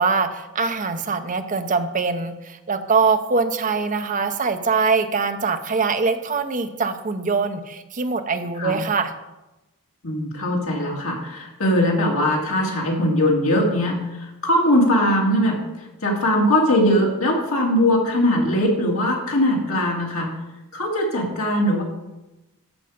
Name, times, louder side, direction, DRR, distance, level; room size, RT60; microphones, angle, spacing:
voice 1, 0.0-9.1, right 4 dB, 35° right, 8 dB, 0.7 m, -23 dB
voice 2, 10.0-15.6 16.0-20.3 20.7-21.8, left 1 dB, 65° left, -1 dB, 2.6 m, -20 dB
13.0 x 5.7 x 5.1 m, 1.0 s
head